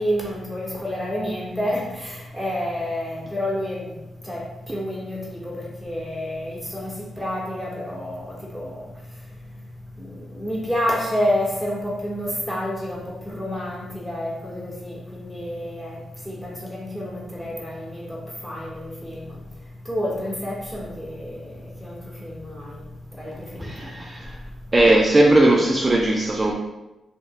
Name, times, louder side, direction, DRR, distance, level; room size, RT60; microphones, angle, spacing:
voice 1, 0.0-4.0 4.2-4.4 4.7-8.9 10.0-16.0 16.2-19.4 19.8-22.8 23.2-23.9, left 1 dB, ahead, -5 dB, 1.2 m, -29 dB
voice 2, 23.6-24.4 24.7-26.5, right 1 dB, 30° right, -1 dB, 0.4 m, -18 dB
2.5 x 2.1 x 3.6 m, 1.0 s
supercardioid pair, 50°, 0 cm